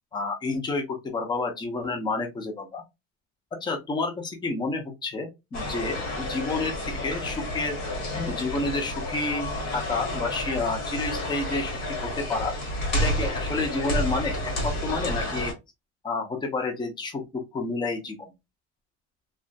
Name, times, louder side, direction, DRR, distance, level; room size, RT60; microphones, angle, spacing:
voice 1, 0.1-2.8 3.5-6.7 7.0-7.8 8.1-12.6 12.9-15.5 16.0-18.3, left 3 dB, 15° left, 0.5 m, -30 dB
sound 1, 5.5-15.5, left 1 dB, 50° left, 1.2 m, -30 dB
2.4 x 2.2 x 2.4 m
supercardioid pair, 125°, 35 cm